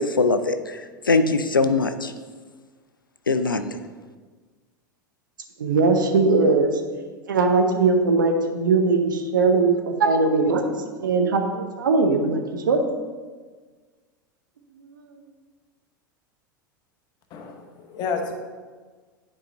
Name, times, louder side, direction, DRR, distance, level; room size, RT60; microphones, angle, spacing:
voice 1, 0.0-2.1 3.3-3.8, left 3 dB, 85° left, 10 dB, 0.4 m, -22 dB
voice 2, 5.6-6.8 7.3-10.6 11.0-12.8 14.9-15.1, right 3 dB, 70° right, 4 dB, 0.8 m, -20 dB
voice 3, 17.3-18.3, left 5 dB, 40° left, 4 dB, 1.0 m, -30 dB
10.0 x 4.7 x 2.8 m, 1.4 s
figure-of-eight pair, 85°, 11 cm